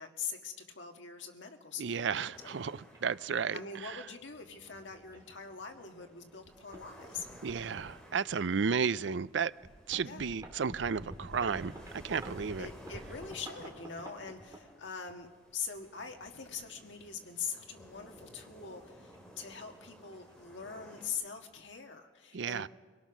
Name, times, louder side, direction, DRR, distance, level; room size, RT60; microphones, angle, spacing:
voice 1, 0.0-2.7 3.5-7.3 10.0-10.3 12.6-22.7, left 6 dB, 90° left, 1.8 m, -43 dB
voice 2, 1.8-3.6 7.4-9.5 9.9-11.7 12.0-12.7 22.3-22.7, right 6 dB, 85° right, 0.5 m, -33 dB
sound 1, 2.3-21.1, equal, 5° left, 3.2 m, -56 dB
sound 2, 2.9-3.0 3.9-4.1 4.7-4.8 5.1-5.3 6.0-6.1 6.4-6.8 7.1-8.4 8.9-9.0 9.6-15.2 16.0-16.9 18.6-19.8 20.0-20.3 20.6-20.7 21.0-21.4, right 1 dB, 20° right, 2.7 m, -49 dB
24.5 x 17.5 x 6.1 m
head